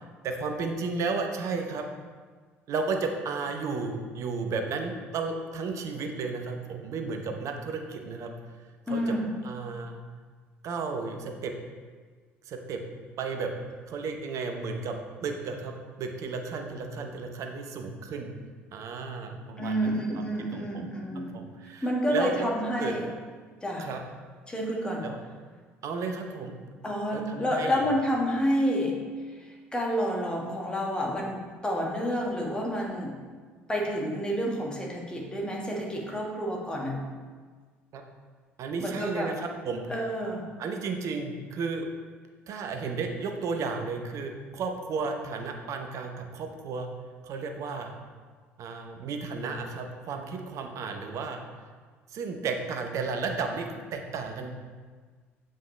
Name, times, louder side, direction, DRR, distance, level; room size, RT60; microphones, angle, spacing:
voice 1, 0.0-1.9 2.7-8.3 8.9-9.2 9.4-10.0 10.6-11.5 12.4-12.8 13.2-13.5 13.9-18.3 18.7-20.2 20.5-22.5 22.8-22.9 23.8-24.0 25.0-25.2 25.8-26.5 27.1-27.9 37.9-38.0 38.6-39.9 40.6-41.9 42.5-46.9 47.2-47.9 48.6-51.4 52.1-54.6, right 4 dB, 50° right, 4 dB, 0.9 m, -33 dB
voice 2, 8.9-9.3 19.6-21.4 21.8-23.1 23.6-23.9 24.5-25.1 26.8-29.0 29.4-29.5 29.7-33.2 33.7-37.0 38.8-39.3 39.9-40.5, equal, 15° left, -2 dB, 1.6 m, -29 dB
7.2 x 5.5 x 3.3 m, 1.5 s
figure-of-eight pair, 55°, 7 cm